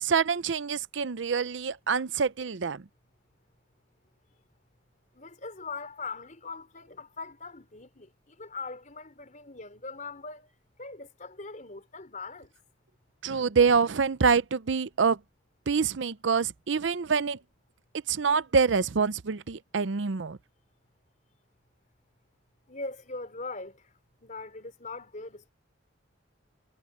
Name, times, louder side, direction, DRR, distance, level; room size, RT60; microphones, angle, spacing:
voice 1, 0.0-2.8 13.2-15.2 15.7-17.4 18.1-20.4, right 5 dB, 75° right, 0.6 m, -26 dB
voice 2, 5.1-12.5 22.7-23.9 24.2-25.5, left 3 dB, 45° left, 4.4 m, -41 dB
head